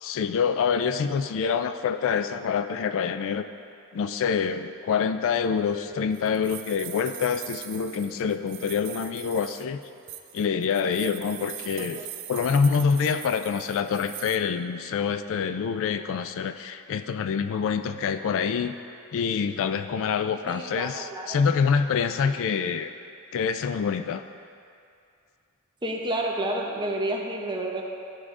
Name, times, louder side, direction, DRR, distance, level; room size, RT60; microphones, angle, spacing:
voice 1, 0.0-3.5 3.9-9.8 10.3-12.0 12.3-18.8 19.1-22.9 23.3-24.2, left 6 dB, 65° left, 10 dB, 0.3 m, -26 dB
sound 1, 5.5-14.4, right 12 dB, 55° right, 0.5 m, -41 dB
voice 2, 20.5-21.4 25.8-27.8, right 1 dB, 20° right, 0 dB, 0.8 m, -30 dB
12.5 x 4.8 x 3.7 m, 2.5 s
head